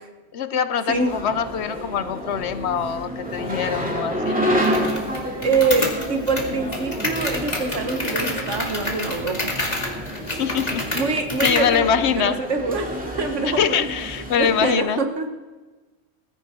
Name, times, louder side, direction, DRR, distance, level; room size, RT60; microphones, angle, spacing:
voice 1, 0.3-4.5 10.3-12.4 13.6-15.0, left 7 dB, 65° left, 13 dB, 0.9 m, -24 dB
sound 1, 0.9-14.7, equal, 5° right, 2.3 m, -29 dB
sound 2, 4.6-11.7, left 1 dB, 35° left, 2.2 m, -29 dB
voice 2, 5.4-9.5 10.9-12.9 13.2-13.9 14.2-15.3, right 3 dB, 70° right, 6 dB, 1.6 m, -24 dB
18.0 x 15.5 x 3.7 m, 1.3 s
omnidirectional pair, 1.3 m